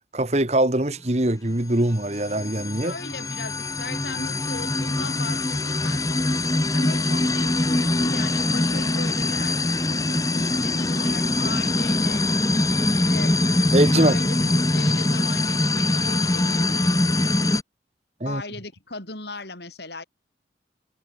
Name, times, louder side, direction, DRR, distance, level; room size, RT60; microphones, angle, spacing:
voice 1, 0.1-2.9 13.7-14.1 18.2-18.4, right 1 dB, 35° right, 1.5 m, -22 dB
sound 1, 1.9-17.6, left 2 dB, 20° left, 1.2 m, -23 dB
voice 2, 2.8-12.3 12.9-13.4 13.9-16.9 18.2-20.0, left 2 dB, 65° left, 6.6 m, -37 dB
head